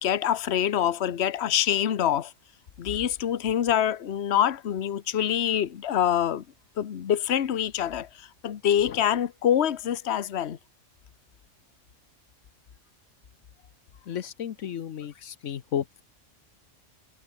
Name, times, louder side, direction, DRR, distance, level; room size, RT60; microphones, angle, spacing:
voice 1, 0.0-2.3 2.8-6.4 6.8-10.6, left 10 dB, 60° left, 1.2 m, -25 dB
voice 2, 14.1-16.0, left 9 dB, 80° left, 1.2 m, -33 dB
omnidirectional pair, 1.3 m